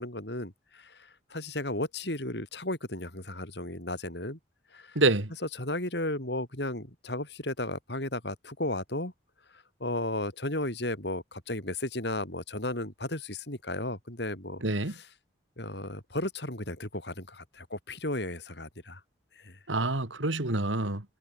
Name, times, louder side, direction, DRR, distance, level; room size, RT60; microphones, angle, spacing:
voice 1, 0.0-4.4 4.7-5.0 5.4-9.1 9.5-15.1 15.6-19.0 19.4-19.6, left 1 dB, 60° left, 5.9 m, -34 dB
voice 2, 5.0-5.3 14.6-14.9 19.7-21.0, right 2 dB, 90° right, 2.6 m, -27 dB
head